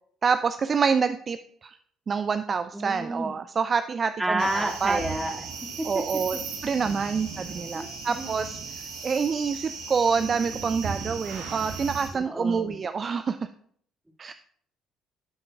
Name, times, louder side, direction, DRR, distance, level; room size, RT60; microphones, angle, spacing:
voice 1, 0.2-1.8 2.1-5.0 5.8-13.4 14.2-14.3, right 5 dB, 40° right, 11 dB, 0.3 m, -27 dB
voice 2, 2.7-3.3 4.2-5.4 5.8-5.9 7.7-7.9 8.1-8.3 12.2-12.7, right 1 dB, 10° right, 1 dB, 2.0 m, -29 dB
sound 1, 4.4-12.1, right 5 dB, 65° right, 1.5 m, -37 dB
12.5 x 8.7 x 2.3 m, 0.62 s
figure-of-eight pair, 50°, 0 cm